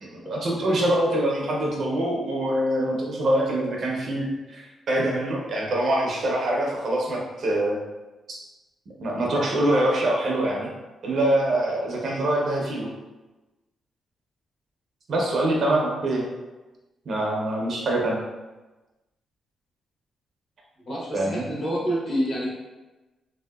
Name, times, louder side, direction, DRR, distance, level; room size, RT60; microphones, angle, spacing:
voice 1, 0.0-7.8 8.3-8.4 9.0-10.7 11.0-12.9 15.1-16.3 17.1-18.2 21.1-21.4, right 1 dB, 45° right, -2 dB, 0.6 m, -24 dB
voice 2, 20.9-22.5, equal, 40° left, -5 dB, 0.9 m, -28 dB
3.1 x 2.7 x 2.2 m, 1.1 s
wide cardioid pair, 170°, 0 cm